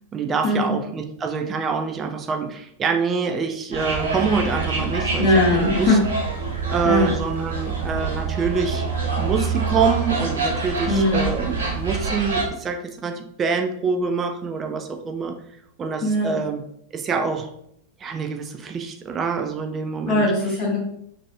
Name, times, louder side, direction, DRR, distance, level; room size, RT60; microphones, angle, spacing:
voice 1, 0.1-6.0 6.7-8.8 9.2-15.4 15.8-16.6 16.9-17.5 18.0-20.3, right 5 dB, 25° right, 4 dB, 0.4 m, -26 dB
sound 1, 3.7-12.4, right 4 dB, 70° right, 0.8 m, -26 dB
voice 2, 5.2-6.0 6.8-7.1 10.9-11.2 16.0-16.4 20.1-20.8, left 1 dB, 40° left, -3 dB, 0.6 m, -19 dB
3.0 x 2.7 x 2.6 m, 0.72 s
figure-of-eight pair, 90°, 0 cm